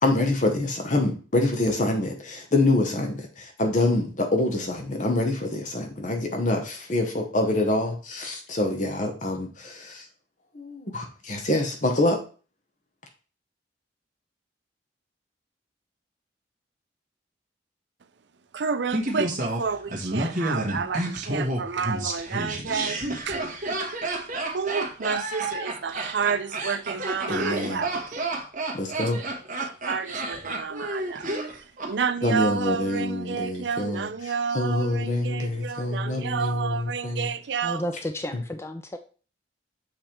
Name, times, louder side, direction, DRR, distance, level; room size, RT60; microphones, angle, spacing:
voice 1, 0.0-10.1 10.5-12.2 27.3-27.9 28.7-29.2 32.2-34.1 34.5-37.3 38.3-38.4, left 2 dB, 45° left, 1.0 m, -26 dB
voice 2, 18.5-23.4 24.5-28.2 29.6-37.8, right 6 dB, 70° right, 0.5 m, -30 dB
Laughter, 18.9-31.9 32.2-32.3, right 2 dB, 45° right, 1.4 m, -30 dB
voice 3, 37.6-39.0, left 1 dB, 15° left, 0.4 m, -32 dB
7.5 x 3.3 x 4.4 m
head